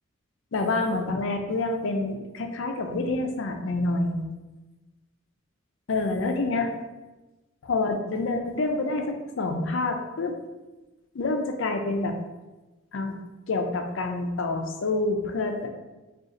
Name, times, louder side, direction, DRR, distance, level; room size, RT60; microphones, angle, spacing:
voice 1, 0.5-4.3 5.9-6.7 7.6-10.4 11.1-12.2 12.9-13.2 13.5-15.7, left 2 dB, 65° left, 4 dB, 0.5 m, -27 dB
3.8 x 2.4 x 3.8 m, 1.1 s
head